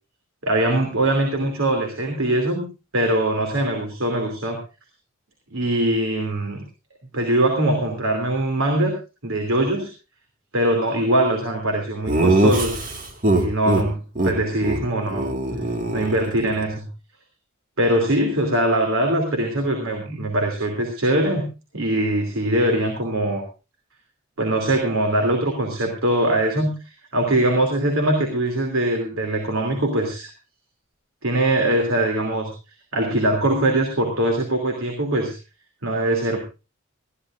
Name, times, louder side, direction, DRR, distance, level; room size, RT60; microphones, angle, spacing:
voice 1, 0.4-2.7 2.9-4.6 5.5-6.6 7.1-9.0 9.2-9.9 10.5-12.8 13.3-15.3 15.9-16.9 17.8-21.5 21.7-23.4 24.4-26.7 27.1-30.3 31.2-32.5 32.9-35.4 35.8-36.4, right 1 dB, 85° right, 2 dB, 3.0 m, -22 dB
Laughter, 12.1-13.8 14.2-14.3 14.6-14.8 15.1-16.6, right 1 dB, 40° right, 1.9 m, -21 dB
20.0 x 15.0 x 2.6 m, 0.29 s
head